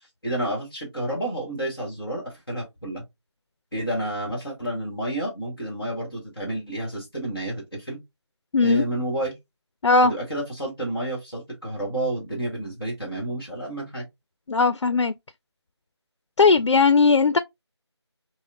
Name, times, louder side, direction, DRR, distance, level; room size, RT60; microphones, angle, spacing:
voice 1, 0.2-3.1 3.7-8.0 8.6-9.3 10.0-14.0, right 1 dB, ahead, 0.6 m, -30 dB
voice 2, 8.5-8.8 9.8-10.1 14.5-15.1 16.4-17.4, left 4 dB, 80° left, 0.4 m, -18 dB
4.9 x 2.1 x 2.5 m
figure-of-eight pair, 170°, 15 cm